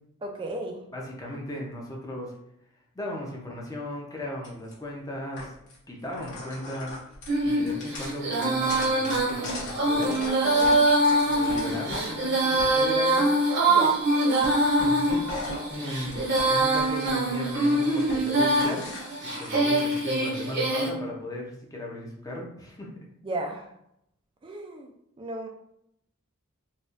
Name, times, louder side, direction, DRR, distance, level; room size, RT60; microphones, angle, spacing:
voice 1, 0.2-0.8 13.7-14.0 23.2-23.7 24.4-24.9 25.2-25.5, right 1 dB, 25° right, 2 dB, 0.4 m, -34 dB
voice 2, 0.9-2.3 2.9-5.5 5.9-7.0 7.4-10.8 11.2-13.3 14.8-15.3 15.7-18.9 19.2-22.9, left 1 dB, 15° left, -1 dB, 0.6 m, -36 dB
sound 1, 4.4-4.7 5.4-5.8 6.1-12.0 12.4-13.4 13.9-14.1 14.4-17.1 17.5-20.0, left 2 dB, 55° left, 1.1 m, -39 dB
Female singing, 7.3-20.9, right 1 dB, 50° right, 0.8 m, -24 dB
4.0 x 2.3 x 2.5 m, 0.76 s
head